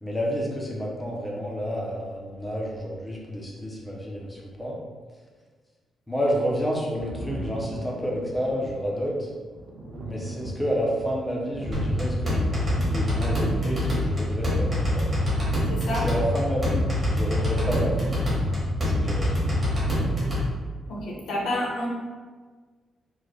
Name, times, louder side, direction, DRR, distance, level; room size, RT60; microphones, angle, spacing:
voice 1, 0.0-4.8 6.1-9.3 10.1-15.1 15.9-16.9 17.1-18.2 18.8-19.6 19.9-20.3, equal, 5° left, -3 dB, 0.5 m, -30 dB
Thunder, 6.9-14.3 15.4-15.5, right 1 dB, 50° right, 0.6 m, -38 dB
sound 1, 11.7-20.4, left 1 dB, 25° right, 1.0 m, -25 dB
voice 2, 15.7-16.1 20.9-21.9, left 1 dB, 65° left, -4 dB, 0.9 m, -29 dB
3.2 x 2.1 x 3.7 m, 1.5 s
wide cardioid pair, 180°, 0 cm